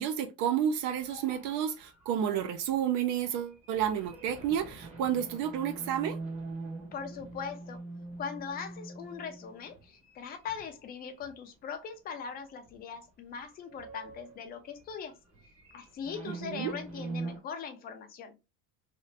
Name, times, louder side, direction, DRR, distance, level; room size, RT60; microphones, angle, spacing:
voice 1, 0.0-6.2 16.3-16.7, right 9 dB, 50° right, 0.5 m, -31 dB
sound 1, 0.8-11.5 11.9-12.1 12.6-13.0 13.3-17.4, right 3 dB, 15° right, 0.9 m, -44 dB
voice 2, 6.9-7.8 8.2-15.2 15.7-18.4, left 6 dB, 25° left, 0.5 m, -40 dB
2.9 x 2.4 x 3.1 m
cardioid pair, 155°, 38 cm